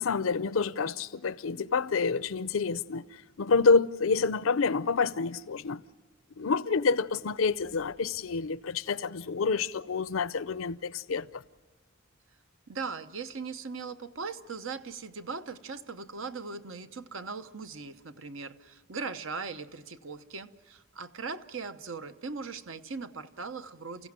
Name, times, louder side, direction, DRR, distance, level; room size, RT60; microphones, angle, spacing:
voice 1, 0.0-5.8 6.4-11.4, left 4 dB, 85° left, 0.6 m, -28 dB
voice 2, 12.7-24.1, right 4 dB, 75° right, 0.9 m, -39 dB
29.5 x 16.0 x 7.5 m
head